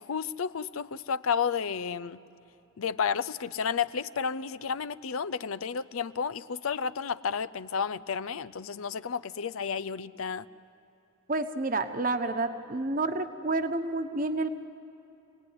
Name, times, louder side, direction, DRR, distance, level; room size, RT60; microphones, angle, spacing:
voice 1, 0.0-2.2 2.8-10.5, left 6 dB, 85° left, 17 dB, 0.6 m, -31 dB
voice 2, 11.3-14.5, right 2 dB, 40° right, 8 dB, 1.1 m, -29 dB
27.5 x 19.0 x 9.7 m, 2.9 s
head